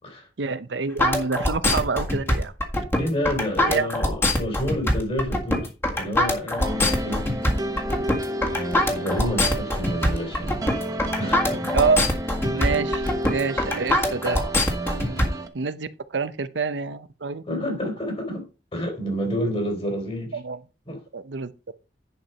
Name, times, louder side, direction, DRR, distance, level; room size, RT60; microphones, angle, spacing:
voice 1, 0.4-2.5 3.7-3.9 11.7-12.1 12.5-14.4 15.5-17.4 20.3-20.6 21.1-21.7, right 4 dB, 80° right, 0.7 m, -27 dB
sound 1, 1.0-15.3, left 1 dB, 15° left, 1.8 m, -23 dB
voice 2, 3.0-7.3 8.5-10.6 11.2-11.7 15.1-15.3 17.4-20.4 20.9-21.0, equal, 35° left, 3.5 m, -29 dB
sound 2, 6.6-15.5, right 1 dB, 20° right, 1.1 m, -31 dB
10.5 x 4.6 x 5.4 m
head